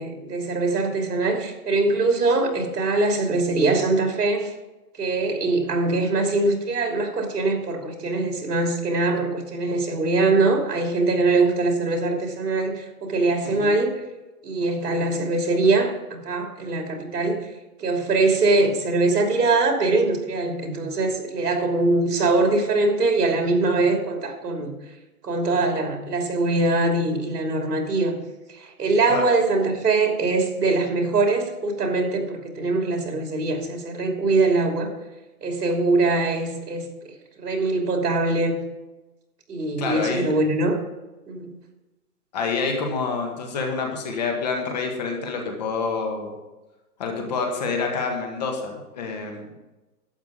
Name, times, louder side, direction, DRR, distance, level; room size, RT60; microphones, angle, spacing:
voice 1, 0.0-4.5 5.0-13.9 14.4-17.5 17.8-24.7 25.2-28.2 28.5-34.9 35.4-36.9 37.4-38.6 39.5-40.8 41.3-41.5, right 3 dB, 80° right, 3 dB, 3.0 m, -22 dB
voice 2, 39.8-40.2 42.3-46.3 47.0-49.5, left 4 dB, 25° left, 2 dB, 1.6 m, -27 dB
12.0 x 8.4 x 5.0 m, 1.1 s
hypercardioid pair, 170°, 46 cm